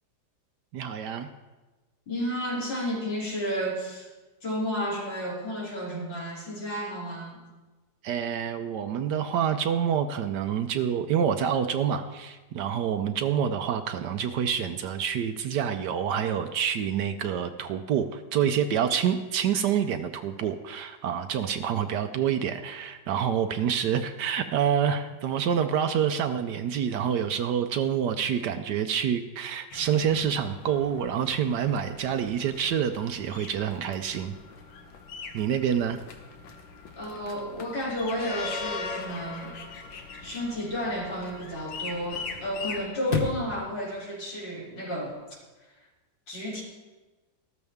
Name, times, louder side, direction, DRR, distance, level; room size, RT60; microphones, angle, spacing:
voice 1, 0.7-1.3 8.0-34.3 35.3-36.0, right 8 dB, 70° right, 9 dB, 1.1 m, -27 dB
voice 2, 2.1-4.1 4.4-7.4 37.0-39.5 40.2-45.2 46.3-46.6, equal, 70° left, -6 dB, 4.1 m, -32 dB
sound 1, 29.7-42.9, left 4 dB, 85° left, 1.9 m, -41 dB
Chirp tweet / Car / Slam, 35.3-45.3, left 4 dB, 35° left, 1.0 m, -41 dB
13.5 x 13.5 x 3.5 m, 1.2 s
omnidirectional pair, 2.1 m